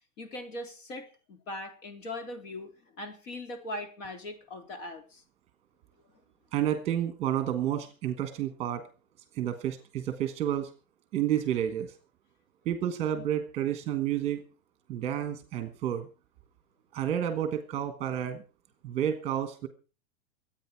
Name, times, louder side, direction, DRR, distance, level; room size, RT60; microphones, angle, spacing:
voice 1, 0.2-2.7 3.0-5.2, left 1 dB, 70° left, 5 dB, 3.9 m, -40 dB
voice 2, 6.5-8.8 9.3-10.7 11.1-11.9 12.6-14.4 14.9-16.1 16.9-18.4 18.8-19.7, right 10 dB, 15° right, 8 dB, 1.2 m, -30 dB
23.5 x 9.0 x 4.5 m, 0.35 s
supercardioid pair, 180°, 40 cm